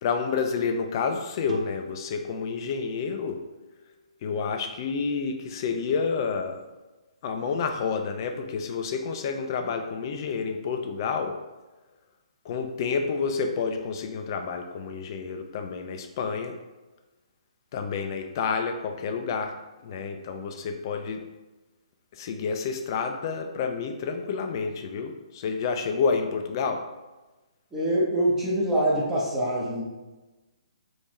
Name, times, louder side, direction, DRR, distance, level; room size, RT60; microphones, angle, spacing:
voice 1, 0.0-3.4 4.2-6.6 7.2-11.4 12.5-16.6 17.7-19.5 19.8-21.2 22.2-26.8, left 5 dB, 40° left, 5 dB, 0.4 m, -29 dB
sound 1, 1.5-4.8, right 1 dB, 85° right, 0.7 m, -44 dB
voice 2, 27.7-29.8, right 1 dB, 10° right, -7 dB, 0.9 m, -24 dB
3.5 x 2.7 x 3.1 m, 1.1 s
hypercardioid pair, 145°, 4 cm